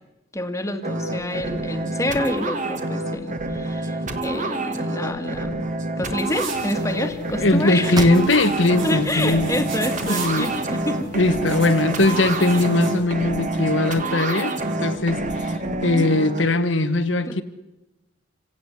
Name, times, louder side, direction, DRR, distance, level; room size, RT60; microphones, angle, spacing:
voice 1, 0.3-5.7 6.0-8.0 8.8-11.1 15.9-16.3 17.3-17.4, left 1 dB, 15° left, 7 dB, 1.9 m, -28 dB
sound 1, 0.8-16.4, right 2 dB, 40° right, 2.1 m, -27 dB
sound 2, 6.2-12.9, right 3 dB, 85° right, 5.7 m, -37 dB
voice 2, 7.3-9.7 10.0-10.5 11.1-14.5 14.8-15.6 15.8-17.4, left 2 dB, 75° left, 11 dB, 1.4 m, -20 dB
sound 3, 7.9-8.7 9.2-9.3 9.8-10.7, right 2 dB, 20° right, 1.5 m, -33 dB
27.5 x 17.5 x 8.3 m, 1.0 s
head